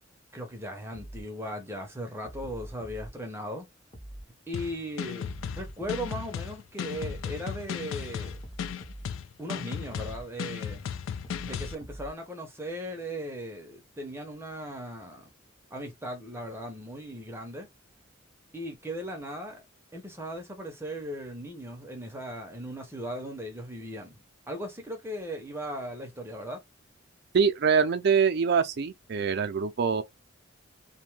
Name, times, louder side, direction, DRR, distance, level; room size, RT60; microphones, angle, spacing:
voice 1, 0.3-3.7 4.5-5.3 5.5-8.4 9.4-10.8 11.4-15.3 15.7-17.7 18.5-19.6 19.9-24.2 24.5-26.6, equal, 10° right, 0.6 m, -38 dB
sound 1, 0.9-1.3 2.2-3.1 3.9-4.3 5.2-6.2 6.9-7.3 8.2-9.2 9.9-10.3 11.2-12.2, right 1 dB, 30° left, 0.8 m, -43 dB
sound 2, 4.5-11.7, left 8 dB, 80° left, 0.3 m, -35 dB
voice 2, 27.3-30.0, right 6 dB, 55° right, 0.4 m, -24 dB
2.6 x 2.2 x 3.1 m
head